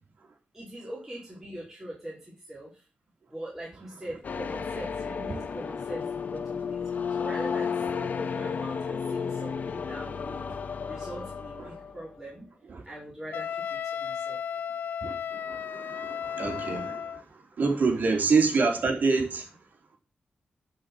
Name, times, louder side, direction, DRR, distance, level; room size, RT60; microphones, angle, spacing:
voice 1, 0.5-2.8 3.3-6.8 7.1-10.4 10.9-12.5 12.8-14.4 18.0-18.1, right 1 dB, 15° right, 4.7 m, -42 dB
sound 1, 4.2-12.1, left 6 dB, 60° left, 1.2 m, -33 dB
Wind instrument woodwind instrument, 13.3-17.2, left 8 dB, 80° left, 0.4 m, -34 dB
voice 2, 15.0-19.5, right 4 dB, 65° right, 3.5 m, -27 dB
11.5 x 5.9 x 6.1 m
cardioid pair, 85°, 3 cm